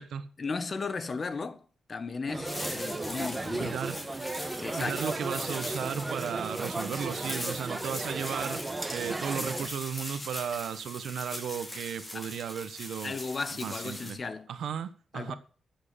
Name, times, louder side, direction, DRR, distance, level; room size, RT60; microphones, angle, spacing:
voice 1, 0.4-3.8 4.6-4.9 12.1-12.3 13.0-14.5 15.1-15.4, left 4 dB, 45° left, 1.3 m, -35 dB
sound 1, 2.3-9.7, right 2 dB, 25° right, 1.3 m, -35 dB
sound 2, 2.5-14.1, left 1 dB, 25° left, 5.4 m, -41 dB
voice 2, 3.6-4.0 4.8-8.6 8.9-13.2 13.6-14.2 14.5-15.4, right 8 dB, 85° right, 1.3 m, -35 dB
12.5 x 7.9 x 6.9 m
cardioid pair, 70°, 0 cm